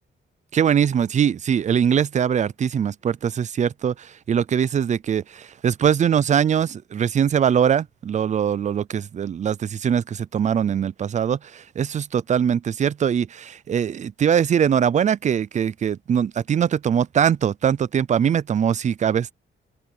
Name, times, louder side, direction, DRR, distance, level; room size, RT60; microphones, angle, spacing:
voice 1, 0.5-19.3, right 8 dB, 35° right, 0.4 m, -22 dB
wide cardioid pair, 180°, 21 cm